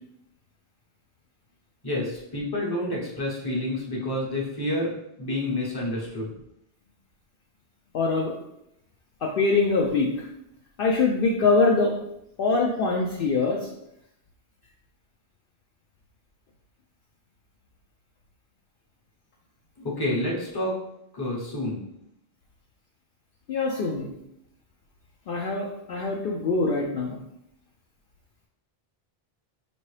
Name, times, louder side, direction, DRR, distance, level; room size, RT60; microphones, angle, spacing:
voice 1, 1.8-4.9 5.2-6.3 19.8-20.8 21.1-21.8, left 1 dB, 25° left, -3 dB, 0.9 m, -29 dB
voice 2, 7.9-8.4 9.2-10.3 10.8-12.0 12.4-13.7 23.5-24.1 25.3-27.2, left 3 dB, 60° left, -1 dB, 0.7 m, -24 dB
5.1 x 2.8 x 3.2 m, 0.80 s
omnidirectional pair, 1.1 m